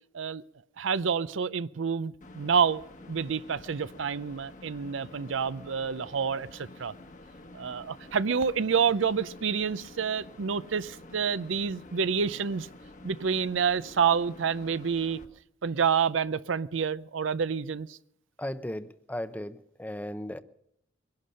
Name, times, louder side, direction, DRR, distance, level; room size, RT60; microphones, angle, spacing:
voice 1, 0.8-2.8 3.1-6.9 7.5-12.7 13.0-15.2 15.6-18.0, right 6 dB, 70° right, 16 dB, 0.6 m, -28 dB
sound 1, 2.2-15.3, left 2 dB, 40° left, 1.2 m, -49 dB
voice 2, 18.4-20.4, left 1 dB, 10° left, 12 dB, 0.6 m, -36 dB
23.0 x 11.5 x 5.6 m, 0.77 s
head